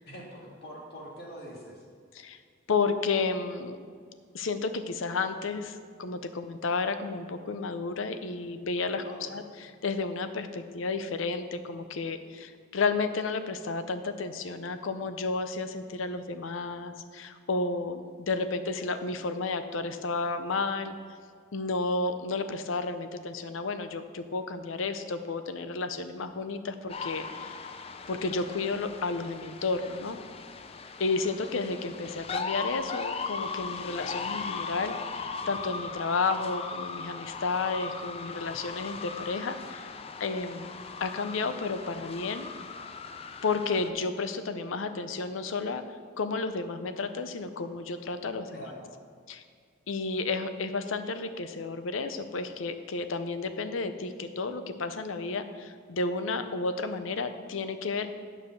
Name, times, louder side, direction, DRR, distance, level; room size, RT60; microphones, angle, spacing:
voice 1, 0.1-1.9 9.0-9.4 48.5-48.9, equal, 50° left, -2 dB, 1.9 m, -44 dB
voice 2, 2.7-3.8 4.3-21.0 21.5-27.6 28.1-30.2 31.0-39.9 40.2-40.7 41.0-42.5 43.4-45.8 46.2-48.6 49.3-49.4 49.9-58.1, left 3 dB, 80° left, 10 dB, 0.6 m, -32 dB
sound 1, 26.9-43.9, left 5 dB, 30° left, 0.4 m, -38 dB
9.1 x 4.8 x 7.0 m, 2.1 s
head